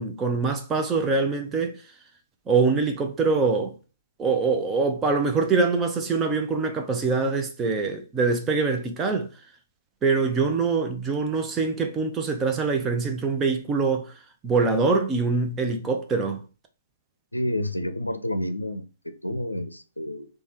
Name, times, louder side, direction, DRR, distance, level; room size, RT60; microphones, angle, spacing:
voice 1, 0.0-1.8 2.5-3.7 4.2-9.3 10.0-14.1 14.4-16.4, right 4 dB, 15° right, 0.5 m, -24 dB
voice 2, 17.3-20.3, left 1 dB, 90° left, 0.5 m, -29 dB
3.3 x 2.2 x 4.3 m
figure-of-eight pair, 125°, 0 cm